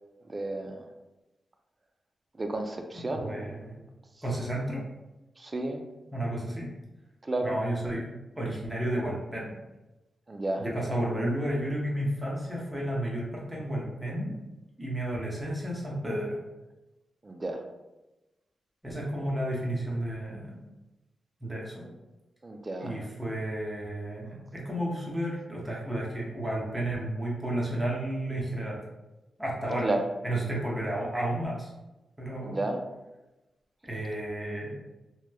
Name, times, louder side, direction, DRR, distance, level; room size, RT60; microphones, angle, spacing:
voice 1, 0.3-0.8 2.4-3.7 5.4-5.8 7.2-7.5 10.3-10.7 17.2-17.6 22.4-23.0 29.8-30.0 32.4-32.8, right 2 dB, 35° right, 4 dB, 0.4 m, -32 dB
voice 2, 2.9-3.7 4.2-4.8 6.1-6.7 7.4-8.1 8.4-9.5 10.6-14.3 14.8-16.4 18.8-20.6 21.4-21.9 22.8-28.8 29.4-29.9 30.2-31.7 32.2-32.6 33.8-34.8, right 1 dB, 15° right, -4 dB, 0.7 m, -32 dB
2.9 x 2.0 x 2.2 m, 1.0 s
cardioid pair, 65°, 0 cm